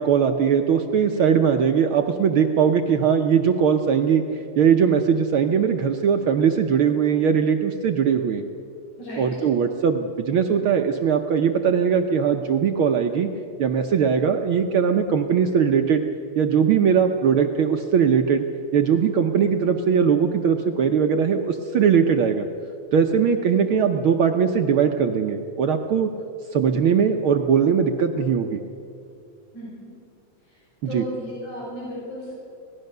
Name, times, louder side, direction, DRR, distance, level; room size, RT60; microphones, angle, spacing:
voice 1, 0.0-4.2 4.6-8.4 9.2-13.3 13.6-16.1 16.3-18.4 18.7-22.5 22.9-26.1 26.5-28.6 30.8-31.0, right 7 dB, 65° right, 5 dB, 1.3 m, -20 dB
voice 2, 29.5-29.9 30.5-30.6 30.9-32.3, equal, 85° left, -7 dB, 8.2 m, -35 dB
25.5 x 18.5 x 6.7 m, 2.5 s
omnidirectional pair, 3.3 m